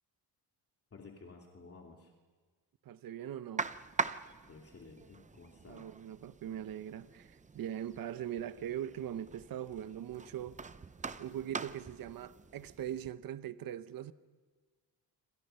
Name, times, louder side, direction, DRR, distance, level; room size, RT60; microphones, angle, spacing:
voice 1, 0.9-2.1 4.5-5.9, left 4 dB, 35° left, 2.8 m, -53 dB
voice 2, 2.8-3.7 5.7-10.6 11.2-14.1, right 10 dB, 55° right, 0.9 m, -41 dB
sound 1, 3.6-13.1, right 4 dB, 20° right, 0.6 m, -43 dB
27.5 x 26.0 x 5.6 m
cardioid pair, 145°, 41 cm